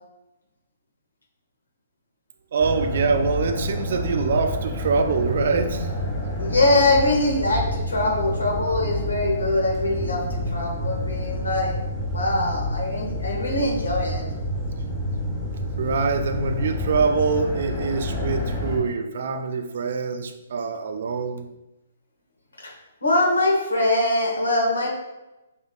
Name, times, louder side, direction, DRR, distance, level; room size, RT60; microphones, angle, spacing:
voice 1, 2.5-5.9 15.8-21.5, right 4 dB, 60° right, 8 dB, 0.4 m, -24 dB
sound 1, 2.6-18.8, left 1 dB, 15° left, 1.4 m, -29 dB
voice 2, 6.4-11.7 12.1-14.2 22.6-22.7 23.0-24.9, left 2 dB, 85° left, -1 dB, 1.4 m, -23 dB
5.1 x 3.4 x 2.3 m, 0.98 s
figure-of-eight pair, 130°, 0 cm